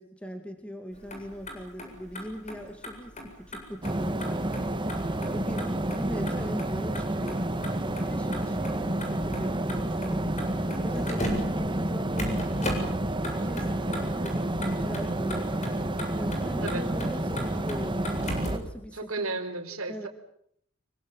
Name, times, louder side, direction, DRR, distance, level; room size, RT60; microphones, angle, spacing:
voice 1, 0.0-4.5 4.8-7.5 8.0-10.4 10.8-13.0 13.4-14.4 14.8-15.5 16.2-18.2 18.5-19.3 19.7-20.1, equal, 5° left, 6 dB, 2.3 m, -40 dB
Motor vehicle (road), 0.9-18.7, left 1 dB, 35° left, 7.8 m, -39 dB
sound 1, 3.8-18.6, right 1 dB, 20° right, 1.7 m, -30 dB
voice 2, 18.9-20.1, right 3 dB, 75° right, 7 dB, 4.0 m, -33 dB
25.5 x 24.5 x 7.3 m, 0.69 s
head